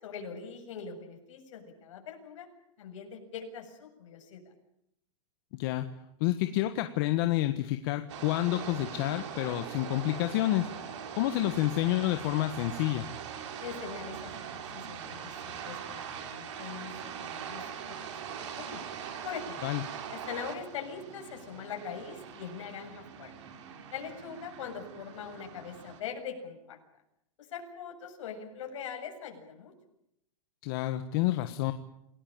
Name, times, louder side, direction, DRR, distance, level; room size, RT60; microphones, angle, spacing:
voice 1, 0.0-2.5 2.8-4.4 13.6-17.9 18.3-18.8 19.2-19.6 20.1-23.3 23.9-26.8 27.4-29.7, left 6 dB, 65° left, 4 dB, 7.6 m, -42 dB
voice 2, 6.2-10.7 11.2-13.1 19.6-19.8 30.6-31.7, left 15 dB, 40° left, 8 dB, 1.5 m, -29 dB
sound 1, 8.1-26.0, right 8 dB, 60° right, 4.7 m, -42 dB
28.5 x 19.0 x 9.0 m, 0.79 s
supercardioid pair, 160°, 17 cm